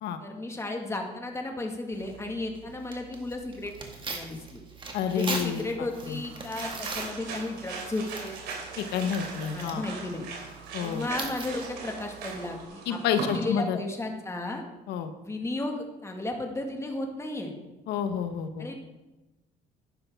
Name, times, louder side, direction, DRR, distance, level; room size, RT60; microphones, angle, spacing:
voice 1, 0.2-3.7 4.1-4.6 5.0-8.4 9.5-10.3 10.8-14.6 15.2-17.5 18.6-18.7, left 2 dB, 15° left, 3 dB, 1.7 m, -34 dB
Tearing, 1.9-12.6, right 3 dB, 30° right, 1.9 m, -42 dB
voice 2, 4.9-5.6 6.1-6.2 8.8-9.8 10.7-11.1 12.9-13.8 14.9-15.1 17.9-18.7, left 7 dB, 80° left, 8 dB, 1.1 m, -29 dB
sound 1, 5.9-13.5, right 4 dB, 80° right, 3.0 m, -39 dB
11.0 x 9.9 x 3.6 m, 1.0 s
cardioid pair, 110°, 17 cm